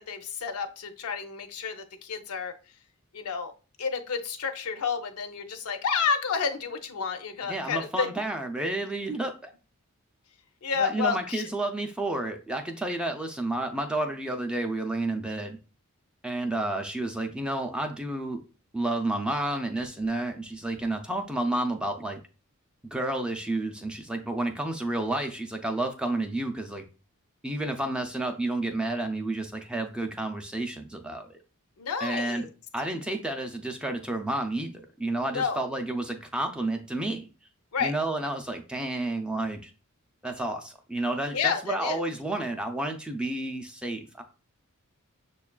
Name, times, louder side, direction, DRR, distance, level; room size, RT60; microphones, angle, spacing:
voice 1, 0.0-2.5 3.1-3.5 3.8-8.1 10.6-11.4 31.8-32.5 35.3-35.6 37.7-37.9 41.3-42.0, left 6 dB, 80° left, 7 dB, 0.5 m, -30 dB
voice 2, 7.4-9.5 10.8-15.6 16.2-18.4 18.7-22.2 22.8-26.8 27.4-31.4 32.0-32.5 32.7-37.2 37.8-39.7 40.2-44.2, right 2 dB, 5° right, 4 dB, 0.3 m, -30 dB
6.4 x 2.3 x 2.2 m, 0.34 s
head